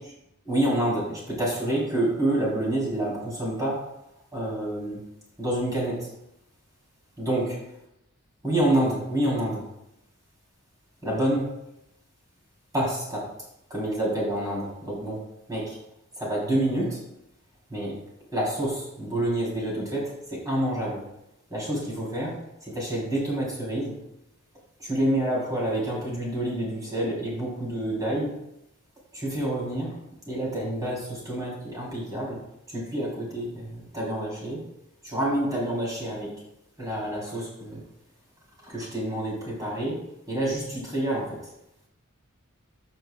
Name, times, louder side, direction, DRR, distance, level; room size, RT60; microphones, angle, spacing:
voice 1, 0.5-3.8 4.3-5.0 5.4-6.1 7.2-7.5 8.4-9.6 11.0-11.5 12.7-13.3 13.7-15.2 15.5-15.8 16.2-17.0 17.7-17.9 18.3-21.0 21.5-22.4 22.6-23.9 24.8-28.3 29.1-30.0 30.3-32.4 32.7-34.6 35.0-36.3 36.8-37.8 38.6-40.0 40.3-41.3, right 1 dB, 15° right, -6 dB, 3.5 m, -28 dB
14.0 x 6.3 x 2.3 m, 0.84 s
head